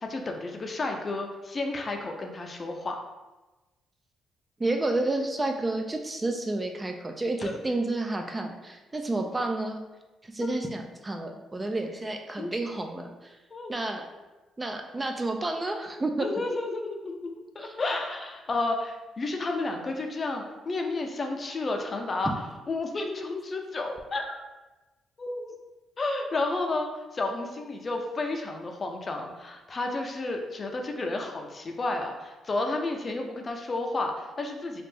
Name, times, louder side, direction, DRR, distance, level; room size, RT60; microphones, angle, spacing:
voice 1, 0.0-3.0 7.4-7.6 10.4-10.5 12.4-12.5 13.5-13.7 16.2-22.3 22.7-24.4 25.2-25.5 26.0-34.8, left 2 dB, 35° left, 3 dB, 0.5 m, -31 dB
voice 2, 4.6-9.8 10.2-13.3 13.7-14.1 14.6-16.3 17.6-17.7 22.3-22.4, right 2 dB, 20° right, 3 dB, 0.3 m, -30 dB
3.2 x 2.5 x 3.3 m, 1.1 s
cardioid pair, 90°, 0 cm